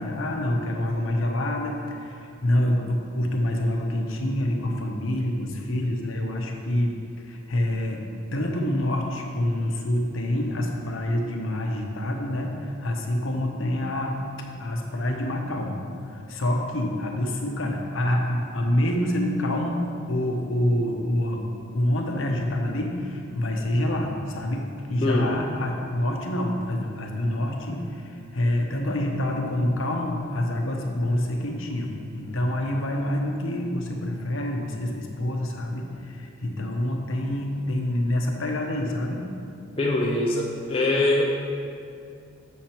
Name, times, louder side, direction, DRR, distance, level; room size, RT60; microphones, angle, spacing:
voice 1, 0.0-8.0 8.3-14.2 14.6-19.8 20.1-39.2, left 1 dB, 60° left, 1 dB, 0.9 m, -27 dB
voice 2, 39.8-41.3, left 2 dB, 25° left, -3 dB, 0.6 m, -23 dB
7.4 x 6.4 x 4.4 m, 2.4 s
head